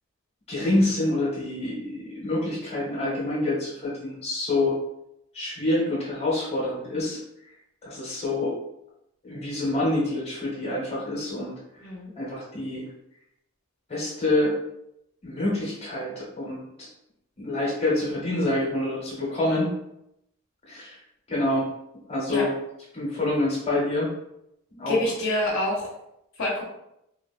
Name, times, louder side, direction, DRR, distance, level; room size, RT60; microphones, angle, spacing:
voice 1, 0.5-4.8 5.3-7.2 7.8-8.6 9.2-11.5 12.2-12.8 13.9-14.6 15.2-16.9 17.4-19.7 20.7-21.0 21.3-21.7 22.1-22.5 22.9-24.1 24.7-25.0, left 2 dB, 30° left, -6 dB, 0.8 m, -27 dB
voice 2, 11.8-12.1 22.3-22.4 24.9-25.9 26.4-26.6, left 1 dB, 70° left, -3 dB, 0.7 m, -26 dB
2.9 x 2.1 x 2.4 m, 0.81 s
head